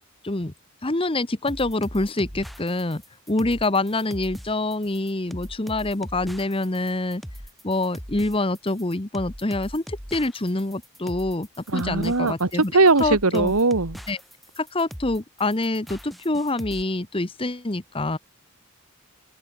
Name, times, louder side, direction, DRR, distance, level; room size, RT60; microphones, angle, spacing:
voice 1, 0.8-3.0 3.3-7.2 7.6-12.7 13.0-13.5 14.1-14.2 14.6-18.2, left 2 dB, 25° left, 1.0 m, -26 dB
sound 1, 1.5-16.8, equal, ahead, 2.0 m, -40 dB
voice 2, 11.7-12.5 12.7-14.0, right 3 dB, 75° right, 1.6 m, -19 dB
head